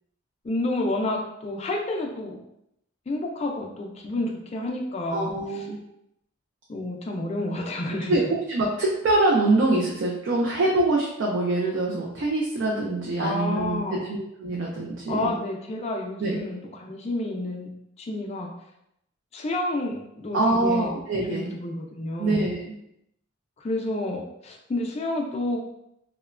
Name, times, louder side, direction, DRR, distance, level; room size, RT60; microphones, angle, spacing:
voice 1, 0.4-2.4 3.1-5.3 6.7-8.1 13.2-14.0 15.1-17.7 18.0-18.5 19.3-20.9 21.3-22.5 23.6-25.6, left 2 dB, 30° left, 1 dB, 0.3 m, -29 dB
voice 2, 5.1-5.8 8.1-8.2 8.5-15.3 16.2-16.4 20.3-21.5 22.2-22.7, right 2 dB, 60° right, -2 dB, 0.4 m, -24 dB
2.9 x 2.1 x 2.4 m, 0.80 s
head